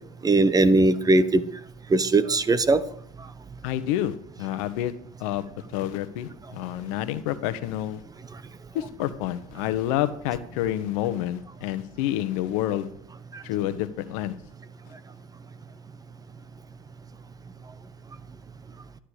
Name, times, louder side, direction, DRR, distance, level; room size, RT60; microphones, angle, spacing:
voice 1, 0.2-1.4 1.9-2.8, right 2 dB, 20° right, 14 dB, 1.0 m, -19 dB
voice 2, 3.6-4.9 5.2-8.0 8.7-12.9 13.4-14.3, left 12 dB, 65° left, 12 dB, 1.2 m, -28 dB
12.0 x 11.5 x 5.0 m, 0.66 s
hypercardioid pair, 80°, 19 cm